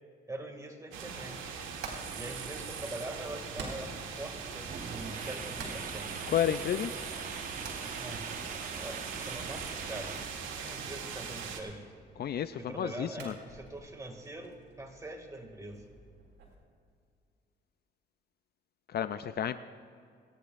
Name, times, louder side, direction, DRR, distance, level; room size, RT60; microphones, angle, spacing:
voice 1, 0.3-1.5 2.2-6.3 6.9-7.1 8.0-8.4 8.7-10.2 10.6-11.8 12.6-15.8, right 2 dB, 15° right, 3 dB, 2.2 m, -43 dB
sound 1, 0.9-11.6, right 6 dB, 90° right, 1.6 m, -41 dB
Hammer, 1.3-16.5, right 3 dB, 60° right, 3.7 m, -51 dB
sound 2, 4.7-10.3, right 5 dB, 45° right, 1.1 m, -43 dB
voice 2, 6.3-6.9 12.2-13.3 18.9-19.6, left 9 dB, 55° left, 12 dB, 0.5 m, -31 dB
28.5 x 10.0 x 2.5 m, 2.2 s
cardioid pair, 90°, 20 cm